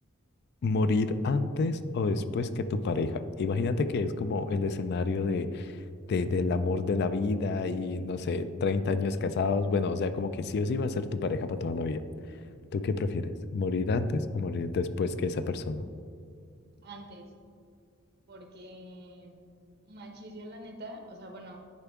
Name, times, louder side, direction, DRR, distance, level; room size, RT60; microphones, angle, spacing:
voice 1, 0.6-5.8 6.1-12.0 12.7-15.8, left 3 dB, 50° left, 11 dB, 0.3 m, -29 dB
voice 2, 16.8-17.3 18.3-19.4 19.9-21.6, right 1 dB, 50° right, 3 dB, 0.9 m, -45 dB
10.5 x 4.5 x 3.5 m, 2.3 s
head